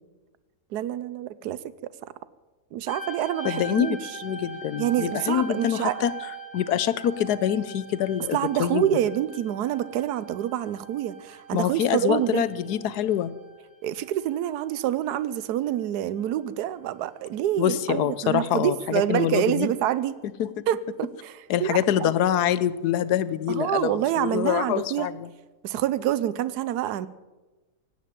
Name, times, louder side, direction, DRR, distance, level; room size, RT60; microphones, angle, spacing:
voice 1, 0.7-1.6 2.0-2.1 2.7-4.2 4.8-6.0 8.3-12.5 13.8-20.2 20.7-22.1 23.5-25.1 25.6-27.1, right 11 dB, 80° right, 16 dB, 1.2 m, -27 dB
sound 1, 2.9-16.9 17.6-17.9, right 3 dB, 20° left, 2.6 m, -42 dB
voice 2, 3.4-6.1 6.5-8.9 11.5-13.3 17.6-19.7 20.4-20.7 21.5-25.3, left 10 dB, 75° left, 16 dB, 1.3 m, -25 dB
16.5 x 9.2 x 8.8 m, 1.2 s
omnidirectional pair, 1.7 m